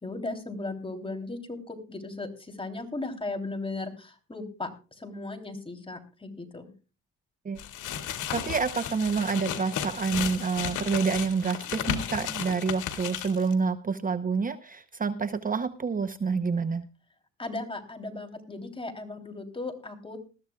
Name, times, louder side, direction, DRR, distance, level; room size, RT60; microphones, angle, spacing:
voice 1, 0.0-6.7 17.4-20.2, left 2 dB, 20° left, 5 dB, 3.1 m, -37 dB
sound 1, 7.6-13.5, left 9 dB, 80° left, 2.2 m, -34 dB
voice 2, 8.3-16.8, right 5 dB, 30° right, 11 dB, 0.8 m, -28 dB
20.0 x 14.0 x 2.3 m, 0.33 s
cardioid pair, 90°, 30 cm